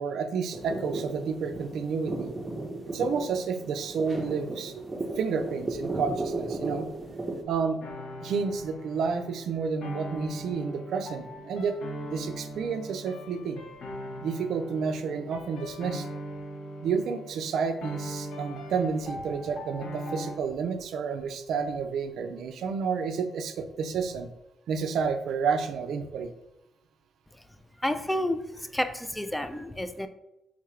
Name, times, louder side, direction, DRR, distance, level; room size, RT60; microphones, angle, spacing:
voice 1, 0.0-2.3 2.9-4.8 5.2-6.9 7.5-7.8 8.2-11.8 12.1-13.6 14.2-16.1 16.8-24.3 24.7-26.3, right 5 dB, 70° right, 7 dB, 0.3 m, -30 dB
sound 1, 0.5-7.4, right 2 dB, 20° right, 0.7 m, -35 dB
sound 2, 7.8-20.4, equal, 70° left, 0.7 m, -40 dB
voice 2, 27.8-30.1, left 1 dB, 5° left, 9 dB, 0.3 m, -30 dB
3.6 x 2.3 x 3.1 m, 0.87 s
cardioid pair, 90°, 0 cm